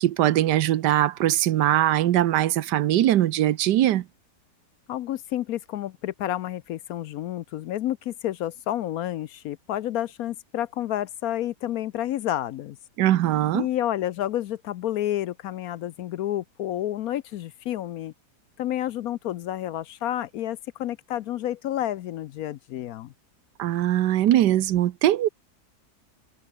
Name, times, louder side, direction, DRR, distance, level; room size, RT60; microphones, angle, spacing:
voice 1, 0.0-4.0 13.0-13.7 23.6-25.3, right 13 dB, 85° right, 1.4 m, -21 dB
voice 2, 4.9-12.8 13.5-18.1 18.6-23.1, left 12 dB, 70° left, 1.0 m, -30 dB
omnidirectional pair, 1.8 m